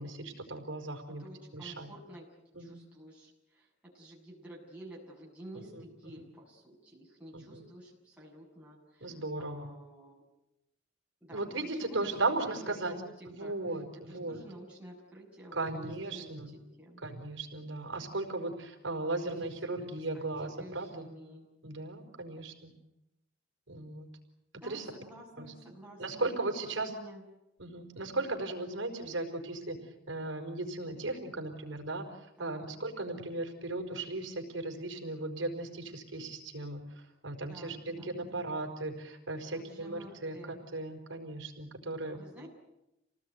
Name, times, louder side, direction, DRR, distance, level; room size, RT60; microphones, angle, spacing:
voice 1, 0.0-1.2 1.5-1.9 2.5-2.8 5.5-5.9 7.3-7.7 9.0-9.7 11.3-12.9 13.3-14.4 15.5-16.5 17.0-21.1 21.6-22.7 23.7-24.1 24.6-24.9 25.4-25.5 26.0-26.9 27.6-29.8 30.1-42.2, right 2 dB, 75° right, 4 dB, 4.9 m, -37 dB
voice 2, 1.1-2.3 2.6-10.2 11.2-13.8 14.1-17.0 19.4-19.7 20.1-21.5 24.5-26.5 26.8-27.2 32.4-32.7 37.4-38.4 39.5-40.6 42.1-42.5, right 1 dB, 5° right, -4 dB, 7.3 m, -51 dB
28.0 x 19.0 x 9.5 m, 0.88 s
head